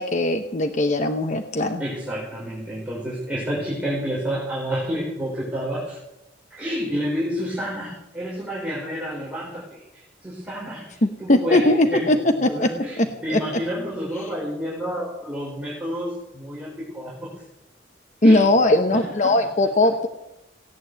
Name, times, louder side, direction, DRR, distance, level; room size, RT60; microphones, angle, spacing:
voice 1, 0.0-1.8 11.0-12.7 13.0-13.4 18.2-20.1, left 1 dB, 40° left, 6 dB, 0.9 m, -19 dB
voice 2, 1.8-6.0 6.5-11.6 11.9-12.1 12.4-17.1 18.2-18.4 18.8-19.3, equal, 5° right, -7 dB, 4.7 m, -29 dB
17.0 x 9.4 x 8.0 m, 0.91 s
head